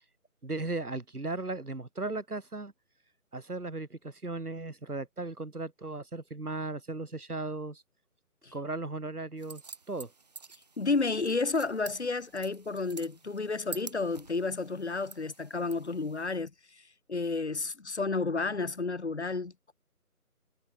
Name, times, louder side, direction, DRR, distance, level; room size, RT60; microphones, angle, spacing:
voice 1, 0.4-2.7 3.3-7.8 8.5-9.6 9.9-10.1, right 2 dB, 80° right, 2.4 m, -36 dB
sound 1, 9.4-16.4, right 4 dB, 25° right, 1.5 m, -49 dB
voice 2, 10.8-16.5 17.1-19.5, left 3 dB, 45° left, 1.4 m, -31 dB
figure-of-eight pair, 160°, 45 cm